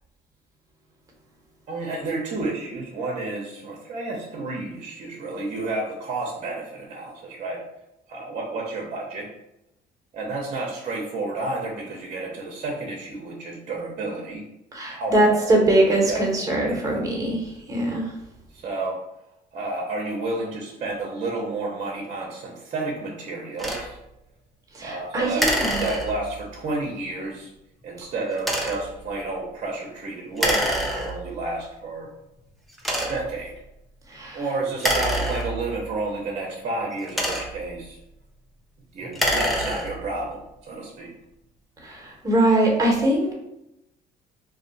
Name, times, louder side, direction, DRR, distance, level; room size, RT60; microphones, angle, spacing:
voice 1, 1.7-7.6 8.1-9.3 10.1-14.4 14.9-15.5 15.9-16.2 16.6-16.8 18.5-19.0 19.5-24.0 24.8-27.5 27.8-32.1 33.0-33.5 34.3-38.0 38.9-41.1, right 3 dB, 45° right, -2 dB, 0.7 m, -31 dB
voice 2, 14.7-18.1 24.7-25.8 34.1-34.4 41.8-43.3, right 1 dB, 20° right, -2 dB, 1.0 m, -22 dB
sound 1, 23.6-23.9 25.4-26.4 28.4-28.9 30.4-31.4 32.1-32.2 32.8-33.4 34.7-35.9 36.8-37.7 39.0-40.1, equal, ahead, 0.5 m, -26 dB
2.4 x 2.3 x 3.9 m, 0.86 s
cardioid pair, 110°, 17 cm